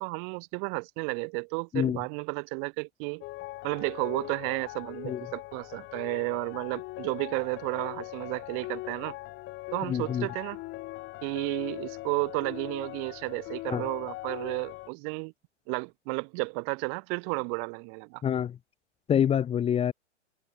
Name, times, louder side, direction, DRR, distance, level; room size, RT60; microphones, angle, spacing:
voice 1, 0.0-3.2 3.6-9.2 9.7-10.6 11.2-15.3 15.7-18.2, right 40 dB or more, 40° right, 4.1 m, -32 dB
sound 1, 3.2-14.9, left 19 dB, 30° left, 4.7 m, -41 dB
voice 2, 9.9-10.3 13.7-13.8 18.2-18.5 19.1-19.9, left 9 dB, 15° left, 1.5 m, -26 dB
figure-of-eight pair, 110°, 35 cm